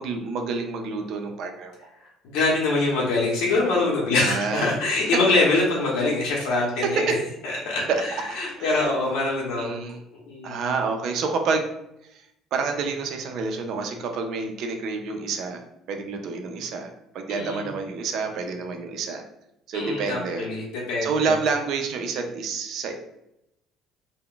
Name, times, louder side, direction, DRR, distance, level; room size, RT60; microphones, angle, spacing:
voice 1, 0.0-1.7 4.2-4.7 6.5-7.1 7.9-8.0 8.6-8.9 9.6-10.0 10.4-11.7 12.1-12.3 12.5-15.6 15.9-19.2 19.7-20.5 21.0-22.9, right 4 dB, 55° right, 4 dB, 0.4 m, -28 dB
voice 2, 2.2-7.1 7.4-9.8 10.3-10.6 17.3-17.7 19.7-21.3, left 2 dB, 80° left, -4 dB, 0.7 m, -24 dB
2.3 x 2.1 x 3.7 m, 0.82 s
cardioid pair, 150°, 0 cm